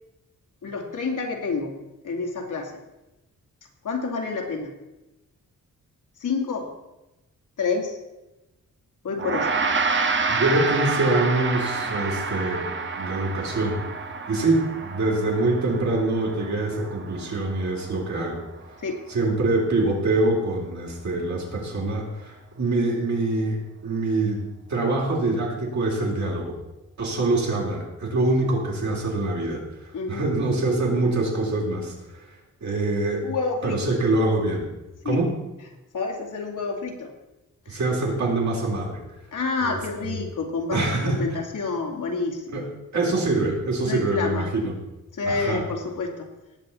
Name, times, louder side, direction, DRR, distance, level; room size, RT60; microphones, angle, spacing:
voice 1, 0.6-1.8 2.0-2.7 3.8-4.7 6.2-6.7 7.6-8.0 9.0-9.5 18.8-19.0 29.9-30.3 33.2-33.8 35.0-35.2 35.9-37.1 37.7-37.8 39.3-42.6 43.8-44.4 45.2-46.3, left 4 dB, 70° left, 0 dB, 2.6 m, -28 dB
Gong, 9.2-18.7, right 4 dB, 35° right, 1.1 m, -29 dB
voice 2, 10.3-12.6 13.0-13.8 14.3-18.4 19.1-26.5 27.0-33.3 33.6-34.7 35.0-35.3 37.7-39.0 39.6-40.2 40.7-41.3 42.5-42.7 42.9-44.7 45.2-45.6, right 2 dB, 60° right, -3 dB, 4.1 m, -25 dB
18.5 x 7.9 x 4.4 m, 0.99 s
wide cardioid pair, 125°, 32 cm